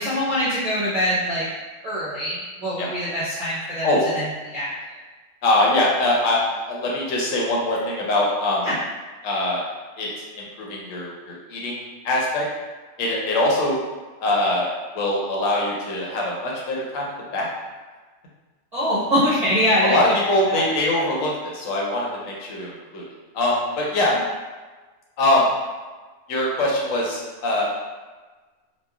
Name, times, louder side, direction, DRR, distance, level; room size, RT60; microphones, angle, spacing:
voice 1, 0.0-1.5 1.8-3.9 4.1-4.2 4.5-4.7 8.6-8.7 18.7-20.0 20.5-20.6, equal, 40° right, -12 dB, 0.6 m, -23 dB
voice 2, 5.4-6.4 6.7-8.7 9.2-9.6 10.0-10.1 10.4-12.4 13.0-13.8 14.2-14.7 14.9-17.5 19.8-23.0 23.3-24.2 25.2-25.5 26.3-27.6, left 1 dB, 90° left, -3 dB, 1.1 m, -22 dB
3.0 x 2.3 x 2.3 m, 1.3 s
omnidirectional pair, 1.3 m